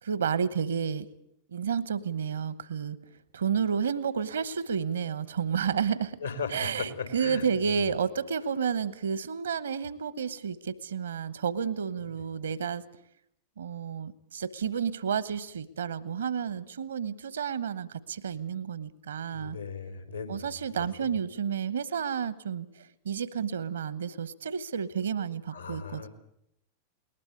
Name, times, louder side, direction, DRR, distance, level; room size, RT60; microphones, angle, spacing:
voice 1, 0.0-1.1 1.5-3.0 3.3-6.2 6.5-12.8 13.6-19.6 20.3-26.1, right 7 dB, 70° right, 19 dB, 1.0 m, -31 dB
voice 2, 6.2-7.7 19.3-21.1 25.5-26.1, left 5 dB, 85° left, 8 dB, 3.6 m, -38 dB
21.0 x 19.5 x 8.4 m, 0.75 s
figure-of-eight pair, 90°, 0 cm